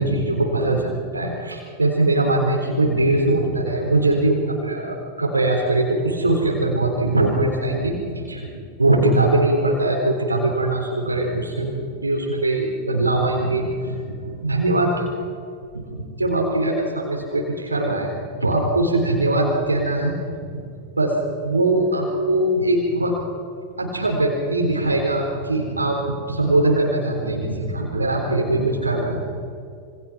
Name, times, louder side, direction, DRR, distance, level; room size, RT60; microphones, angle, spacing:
voice 1, 0.0-15.1 15.7-18.1 18.4-20.6 21.0-21.2 21.4-23.2 23.8-29.2, right 2 dB, 80° right, 0 dB, 3.8 m, -21 dB
27.5 x 25.0 x 6.0 m, 2.4 s
figure-of-eight pair, 90°, 0 cm